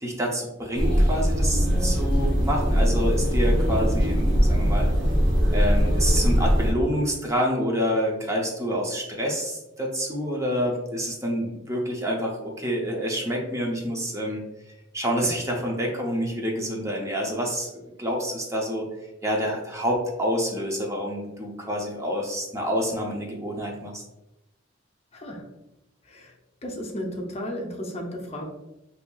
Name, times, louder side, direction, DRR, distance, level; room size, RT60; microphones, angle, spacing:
voice 1, 0.0-4.9 5.5-14.4 14.9-18.9 19.2-24.0, equal, 15° right, -1 dB, 0.6 m, -27 dB
sound 1, 0.7-6.7, equal, 50° right, 1.0 m, -21 dB
voice 2, 25.1-25.5 26.0-26.3 26.6-28.4, equal, 35° left, 1 dB, 0.6 m, -34 dB
4.2 x 2.7 x 2.3 m, 0.93 s
head